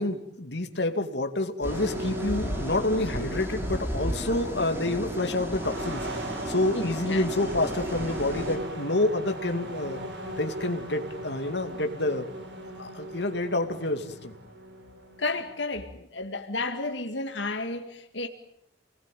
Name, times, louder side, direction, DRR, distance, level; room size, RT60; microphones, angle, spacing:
voice 1, 0.0-6.0 6.5-10.0 10.4-12.3 12.8-14.3, left 2 dB, 65° left, 2.5 m, -28 dB
sound 1, 1.6-8.6, equal, 15° right, 4.7 m, -34 dB
sound 2, 1.7-15.5, right 1 dB, 70° right, 4.5 m, -38 dB
voice 2, 6.7-7.3 15.2-18.3, left 3 dB, 80° left, 2.2 m, -32 dB
29.5 x 20.0 x 9.3 m
head